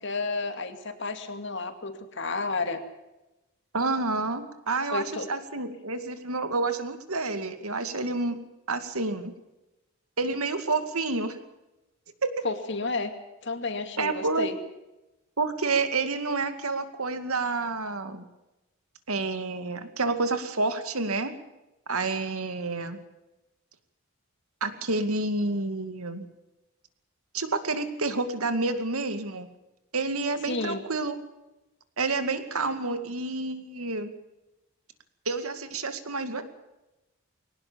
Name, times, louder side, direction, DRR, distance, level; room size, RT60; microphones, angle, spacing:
voice 1, 0.0-2.8 4.9-5.3 12.4-13.1 13.4-14.6 30.5-30.8, left 3 dB, 55° left, 8 dB, 2.5 m, -31 dB
voice 2, 3.7-8.4 8.7-9.3 10.2-11.4 12.2-12.5 14.0-14.5 15.4-18.2 19.1-21.3 21.9-23.0 24.6-26.3 27.3-29.5 29.9-31.2 32.0-34.1 35.3-36.4, right 3 dB, 80° right, 9 dB, 2.4 m, -29 dB
22.0 x 18.5 x 7.0 m, 0.98 s
head